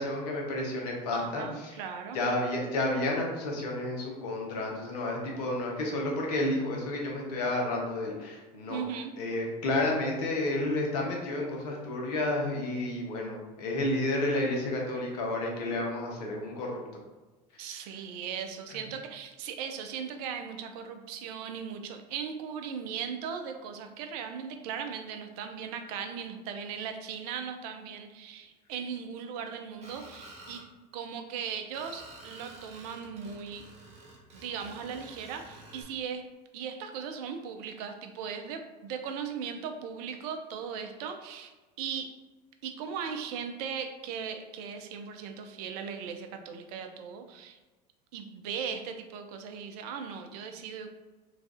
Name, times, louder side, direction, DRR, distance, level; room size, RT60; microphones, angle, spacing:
voice 1, 0.0-1.8 2.1-8.8 9.2-16.8, left 1 dB, 70° left, 0 dB, 0.8 m, -31 dB
voice 2, 1.1-2.2 8.7-9.1 17.6-30.6 30.9-33.7 34.3-36.3 36.5-41.5 41.8-42.2 42.6-47.6 48.1-50.9, right 7 dB, 65° right, 6 dB, 0.5 m, -38 dB
Screech, 29.8-30.6 31.7-35.8, right 2 dB, 30° right, 1.2 m, -50 dB
3.1 x 2.3 x 2.5 m, 1.2 s
hypercardioid pair, 80°, 21 cm